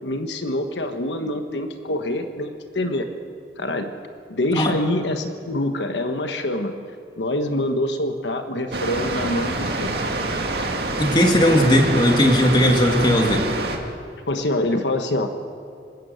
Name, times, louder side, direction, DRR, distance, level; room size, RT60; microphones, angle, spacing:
voice 1, 0.0-3.1 3.6-3.9 4.3-6.7 7.2-9.9 14.3-15.3, left 1 dB, 85° left, 6 dB, 1.3 m, -25 dB
Water, 8.7-13.8, right 2 dB, 65° right, 2.2 m, -26 dB
voice 2, 11.0-13.4, equal, 25° left, 2 dB, 2.3 m, -17 dB
27.0 x 12.0 x 8.1 m, 2.4 s
head